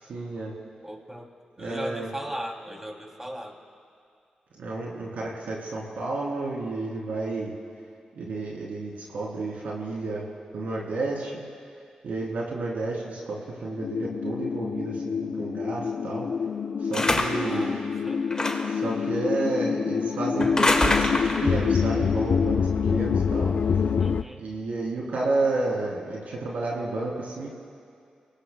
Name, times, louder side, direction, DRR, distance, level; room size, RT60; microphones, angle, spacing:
voice 1, 0.1-0.5 1.6-2.1 4.6-7.5 8.1-10.2 10.5-11.4 12.0-16.3 16.9-17.8 18.8-21.1 21.4-23.5 24.4-27.5, right 2 dB, 80° right, -3 dB, 3.1 m, -31 dB
voice 2, 0.8-1.3 1.6-3.6 17.4-18.5 24.0-24.4, equal, 15° right, 2 dB, 2.7 m, -38 dB
sound 1, 13.8-24.2, left 6 dB, 65° left, 0.4 m, -26 dB
sound 2, 16.9-17.5 18.3-18.8 20.4-21.5, left 2 dB, 30° left, 1.7 m, -25 dB
30.0 x 18.5 x 2.2 m, 2.3 s
cardioid pair, 45°, 3 cm